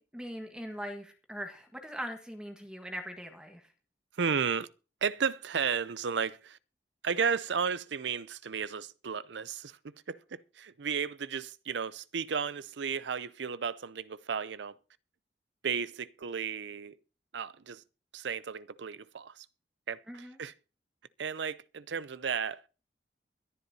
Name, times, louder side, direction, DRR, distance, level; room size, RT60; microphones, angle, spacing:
voice 1, 0.0-3.7 20.1-20.4, equal, 5° right, 1.5 m, -41 dB
voice 2, 4.1-4.7 5.0-6.6 7.0-14.8 15.6-17.0 17.3-17.8 18.1-19.5 19.9-20.5 21.2-22.6, right 6 dB, 90° right, 0.6 m, -34 dB
22.5 x 11.0 x 2.8 m
head